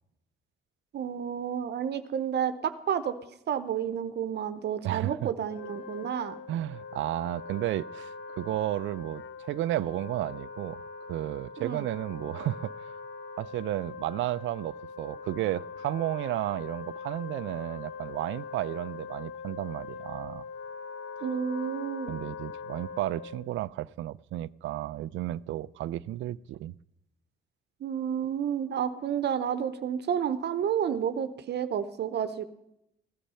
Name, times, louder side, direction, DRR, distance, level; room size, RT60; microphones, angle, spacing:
voice 1, 0.9-3.1 3.5-6.4 11.6-11.8 21.2-22.1 27.8-32.4, right 8 dB, 60° right, 0.9 m, -30 dB
voice 2, 4.8-5.3 6.5-10.8 11.1-12.9 13.4-20.5 22.1-26.7, right 14 dB, 75° right, 0.4 m, -33 dB
Wind instrument woodwind instrument, 5.4-23.5, left 5 dB, 70° left, 1.2 m, -42 dB
16.0 x 10.5 x 5.6 m
cardioid pair, 90°, 20 cm